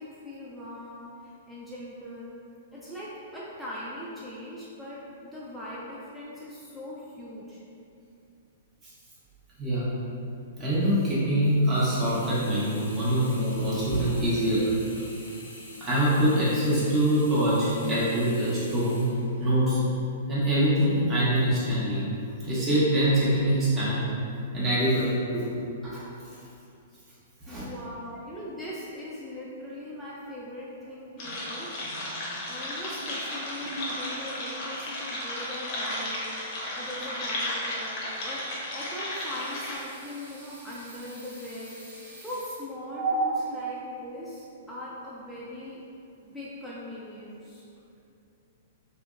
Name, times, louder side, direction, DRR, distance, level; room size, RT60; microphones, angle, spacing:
voice 1, 0.0-2.4 2.7-7.6 27.5-31.7 32.5-38.0 38.2-38.5 38.7-45.8 46.2-47.7, left 1 dB, ahead, -9 dB, 0.3 m, -40 dB
voice 2, 9.6-9.9 10.6-14.7 15.8-19.1 19.4-19.8 20.3-22.1 22.4-24.1 24.5-25.4 25.8-26.4 27.5-27.7 33.7-33.8 43.0-43.1, right 1 dB, 20° right, -10 dB, 0.8 m, -24 dB
Sink (filling or washing), 11.6-19.9 20.4-20.5, left 1 dB, 90° left, 0.4 m, -45 dB
sound 1, 31.2-39.8, left 1 dB, 45° left, 0.6 m, -34 dB
sound 2, 39.1-42.4, right 1 dB, 75° right, 0.7 m, -48 dB
2.7 x 2.0 x 2.4 m, 2.6 s
hypercardioid pair, 115°, 0 cm